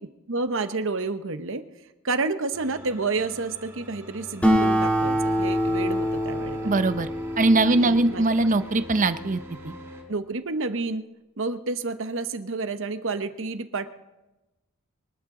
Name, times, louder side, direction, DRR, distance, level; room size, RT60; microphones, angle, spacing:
voice 1, 0.3-1.6 2.0-6.9 7.6-8.5 10.1-11.0 11.4-13.9, right 3 dB, 60° right, 10 dB, 1.0 m, -30 dB
sound 1, 2.5-10.0, equal, 15° right, 4.7 m, -44 dB
Acoustic guitar, 4.4-9.3, equal, 5° left, 3.1 m, -25 dB
voice 2, 6.6-7.1 7.4-9.7, right 2 dB, 35° right, 11 dB, 0.6 m, -21 dB
23.5 x 12.5 x 3.8 m, 1.0 s
head